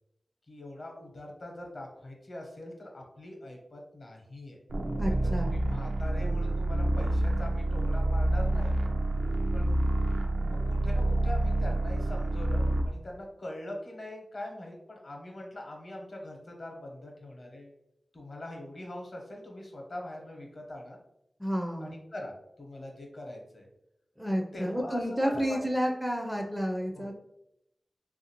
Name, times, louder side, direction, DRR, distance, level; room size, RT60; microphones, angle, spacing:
voice 1, 0.5-4.6 5.4-8.8 9.5-9.8 10.4-17.7 18.1-21.0 21.8-23.7 24.3-25.6 26.9-27.1, left 1 dB, 60° left, 0 dB, 0.8 m, -42 dB
sound 1, 4.7-12.9, right 1 dB, 80° right, 0.4 m, -28 dB
voice 2, 5.0-5.5 21.4-22.0 24.2-27.1, equal, ahead, 1 dB, 0.4 m, -30 dB
3.2 x 2.5 x 2.8 m, 0.80 s
wide cardioid pair, 90°, 0 cm